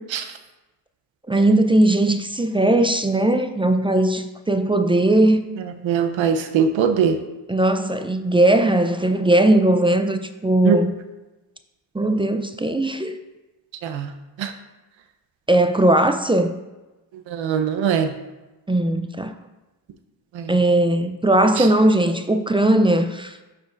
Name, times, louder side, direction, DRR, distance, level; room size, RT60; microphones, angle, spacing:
voice 1, 1.3-5.4 7.5-10.9 11.9-13.2 15.5-16.6 18.7-19.3 20.5-23.4, right 1 dB, 10° right, 8 dB, 0.4 m, -18 dB
voice 2, 5.8-7.2 10.6-10.8 13.8-14.1 14.4-14.5 17.3-18.1 20.3-20.5 21.6-21.7, right 7 dB, 80° right, 8 dB, 0.8 m, -21 dB
12.0 x 5.1 x 2.5 m, 1.1 s
cardioid pair, 80°, 45 cm